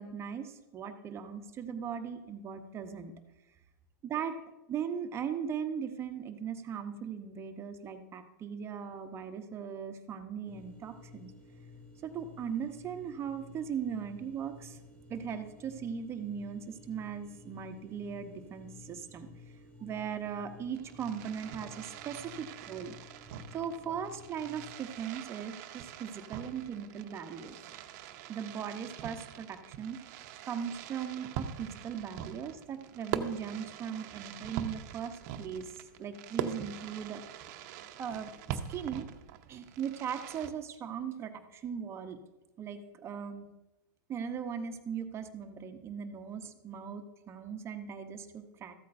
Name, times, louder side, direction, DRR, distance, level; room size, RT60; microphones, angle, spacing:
voice 1, 0.0-3.1 4.0-4.4 4.7-11.3 12.0-14.8 15.1-19.3 19.8-22.9 23.5-27.8 28.3-30.0 30.4-37.2 38.0-39.1 39.5-42.2 42.6-43.5 44.1-48.7, right 7 dB, 25° right, 7 dB, 0.9 m, -39 dB
sound 1, 10.4-24.7, left 3 dB, 20° left, 1.8 m, -53 dB
Fireworks, 20.7-40.5, right 9 dB, 50° right, 0.8 m, -43 dB
14.0 x 8.4 x 2.6 m, 1.0 s
hypercardioid pair, 120°, 10 cm